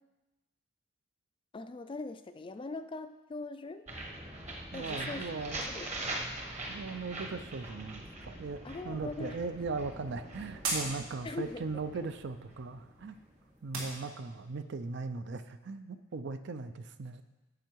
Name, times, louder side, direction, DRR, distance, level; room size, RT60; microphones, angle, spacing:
voice 1, 1.5-3.9 4.7-5.2 5.7-5.9 6.2-6.3 8.6-9.4 11.2-11.6 11.9-12.1, left 3 dB, 25° left, 10 dB, 0.3 m, -41 dB
sound 1, 3.9-13.7, right 2 dB, 35° right, 1.2 m, -43 dB
voice 2, 4.7-5.7 6.7-13.2 13.6-17.2, right 4 dB, 55° right, 11 dB, 0.5 m, -39 dB
sound 2, 9.1-14.6, right 2 dB, 85° right, 2.5 m, -42 dB
9.9 x 6.8 x 4.6 m, 1.1 s
head